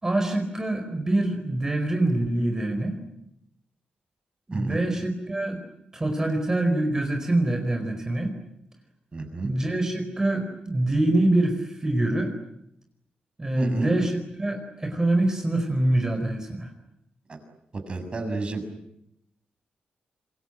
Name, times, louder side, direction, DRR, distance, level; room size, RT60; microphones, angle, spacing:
voice 1, 0.0-3.0 4.5-5.6 5.9-8.3 9.4-12.3 13.4-16.7, right 1 dB, 20° right, 4 dB, 4.8 m, -25 dB
voice 2, 4.5-4.8 9.1-9.5 13.5-13.9 17.9-18.6, right 3 dB, 35° right, 7 dB, 7.1 m, -30 dB
26.5 x 23.0 x 9.1 m, 0.81 s
cardioid pair, 100°, 3 cm